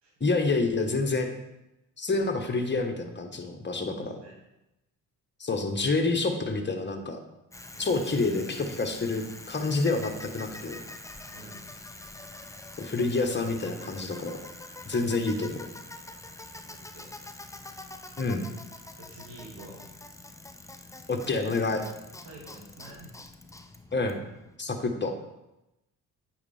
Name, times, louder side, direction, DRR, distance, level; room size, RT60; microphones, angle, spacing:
voice 1, 0.2-1.3 2.0-4.2 5.4-7.2 7.8-10.8 12.8-14.4 14.8-15.7 18.2-18.4 21.1-21.8 23.9-24.2 24.6-25.1, left 3 dB, 25° left, 3 dB, 1.4 m, -28 dB
voice 2, 3.9-4.3 7.7-8.1 11.3-11.7 16.7-17.1 19.0-20.0 22.2-23.1 25.0-25.2, right 1 dB, 65° right, -2 dB, 2.4 m, -48 dB
Bicycle, 7.5-24.6, left 2 dB, 5° left, 0.6 m, -45 dB
8.7 x 5.5 x 3.5 m, 0.92 s
hypercardioid pair, 40°, 45 cm